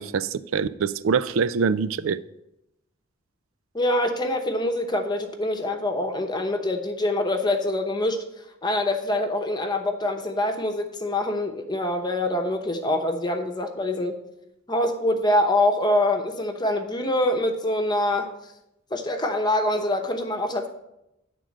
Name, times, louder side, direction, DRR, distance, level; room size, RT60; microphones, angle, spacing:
voice 1, 0.0-2.2, right 5 dB, 75° right, 0.4 m, -24 dB
voice 2, 3.7-8.2 8.6-14.2 14.7-18.3 18.9-20.7, left 1 dB, 20° left, 0.9 m, -25 dB
10.5 x 3.8 x 7.3 m
head